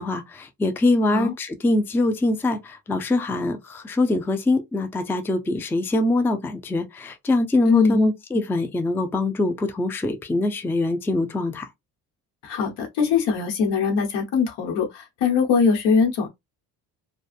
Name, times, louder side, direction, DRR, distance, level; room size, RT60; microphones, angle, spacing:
voice 1, 0.0-11.7, left 2 dB, 5° left, 0.3 m, -23 dB
voice 2, 7.6-8.1 12.4-16.3, left 5 dB, 75° left, 1.1 m, -21 dB
2.4 x 2.3 x 2.4 m
cardioid pair, 80°, 41 cm